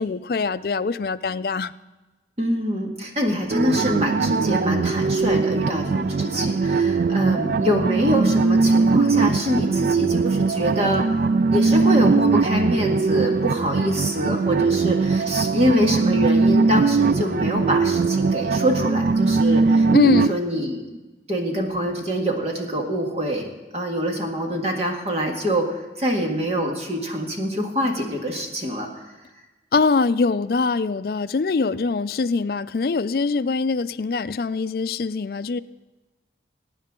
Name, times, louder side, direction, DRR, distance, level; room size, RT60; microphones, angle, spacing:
voice 1, 0.0-1.7 19.9-20.4 29.7-35.6, left 4 dB, 55° left, 13 dB, 0.4 m, -23 dB
voice 2, 2.4-11.1 11.5-21.0 21.3-28.9, equal, 35° right, 1 dB, 1.8 m, -25 dB
sound 1, 3.5-20.3, right 4 dB, 50° right, 0.3 m, -20 dB
22.0 x 9.7 x 3.7 m, 1.2 s
head